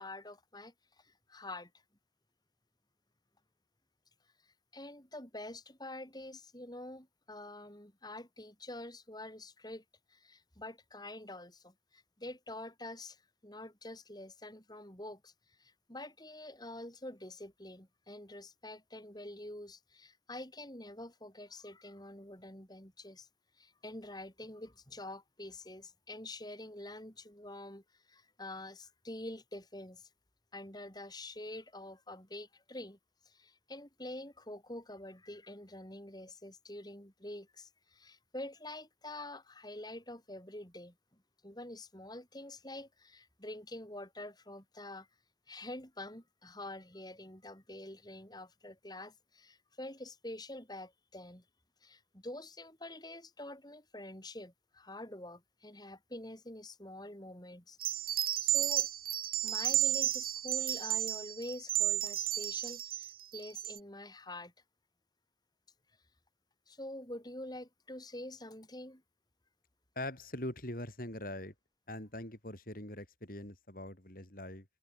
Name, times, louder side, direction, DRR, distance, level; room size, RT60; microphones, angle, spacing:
voice 1, 0.0-1.7 4.7-9.8 10.1-15.3 15.6-23.3 23.6-30.1 30.5-33.0 33.2-40.9 41.4-45.1 45.5-51.4 51.8-57.8 58.1-58.9 59.4-64.5 66.7-69.0, left 1 dB, 25° left, 7.9 m, -47 dB
sound 1, 57.8-63.8, right 13 dB, 55° right, 3.9 m, -32 dB
voice 2, 70.0-71.5 71.9-74.7, left 1 dB, 50° left, 7.2 m, -42 dB
head